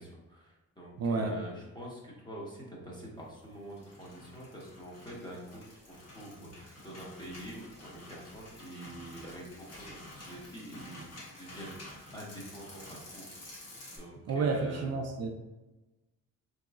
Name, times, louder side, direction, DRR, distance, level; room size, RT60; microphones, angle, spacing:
voice 1, 0.0-11.1 11.3-13.3 13.6-14.9, right 1 dB, 15° left, -4 dB, 0.9 m, -46 dB
voice 2, 1.0-1.3 14.3-15.3, right 4 dB, 60° right, 3 dB, 0.5 m, -30 dB
sound 1, 3.5-14.0, left 1 dB, 55° left, 1.2 m, -50 dB
4.1 x 3.0 x 2.3 m, 1.0 s
cardioid pair, 140°, 30 cm